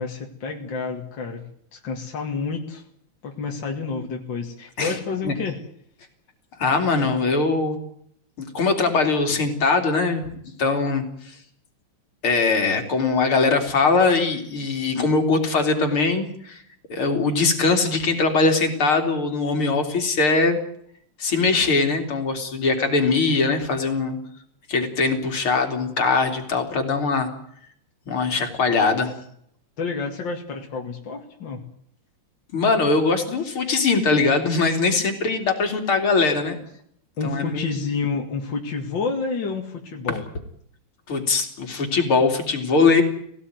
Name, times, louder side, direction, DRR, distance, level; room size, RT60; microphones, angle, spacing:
voice 1, 0.0-1.4 1.7-2.8 3.2-5.6 29.8-31.6 37.2-40.2, left 4 dB, 60° left, 1 dB, 2.8 m, -29 dB
voice 2, 6.6-7.8 8.4-10.3 10.6-11.4 12.2-16.6 16.9-20.6 21.2-24.2 24.7-27.3 28.1-29.2 32.5-36.6 37.2-37.6 41.1-43.0, left 4 dB, 80° left, 4 dB, 4.0 m, -21 dB
19.5 x 18.0 x 9.5 m, 0.70 s
omnidirectional pair, 2.3 m